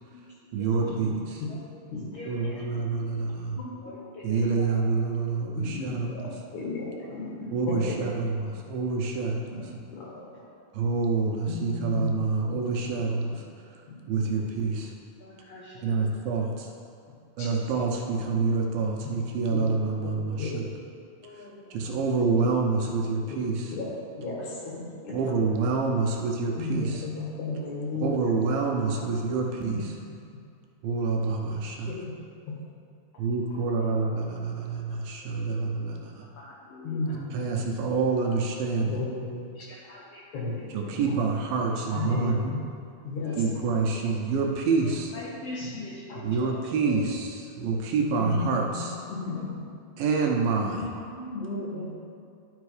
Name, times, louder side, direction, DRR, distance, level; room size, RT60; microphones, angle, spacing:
voice 1, 0.5-1.4 2.3-3.6 4.2-6.3 7.5-9.8 10.7-13.4 14.1-14.9 15.8-16.7 17.4-20.7 21.7-23.7 25.1-27.0 28.0-29.9 30.8-31.9 33.2-36.2 37.3-39.0 40.7-42.6 43.4-45.1 46.2-49.0 50.0-50.9, right 4 dB, 75° right, 0 dB, 2.4 m, -27 dB
voice 2, 2.1-2.5 3.8-4.7 6.5-7.3 8.7-8.8 10.1-10.3 14.8-14.9 15.2-16.1 21.2-22.0 24.3-24.6 29.0-29.1 33.5-33.9 35.3-35.6 36.4-36.5 36.8-37.0 38.2-38.3 39.7-40.2 41.6-42.2 43.1-43.5 44.8-47.0 47.6-47.8 48.5-48.6 49.3-49.4 50.8-51.0 51.4-51.9, left 2 dB, 75° left, -6 dB, 1.4 m, -43 dB
voice 3, 5.5-6.2 6.5-7.3 7.7-7.9 9.5-9.6 9.9-10.1 11.5-12.4 17.4-17.5 19.5-19.7 20.4-20.5 23.3-23.4 23.7-23.9 24.1-25.1 26.6-28.2 29.6-29.8 31.9-32.0 36.9-37.2 38.9-40.0 40.3-41.0 42.0-42.7 43.0-43.3 46.1-46.2 48.2-48.8 49.1-49.6 50.7-51.9, left 3 dB, 55° left, -5 dB, 2.9 m, -34 dB
11.5 x 5.2 x 4.8 m, 2.4 s
omnidirectional pair, 4.4 m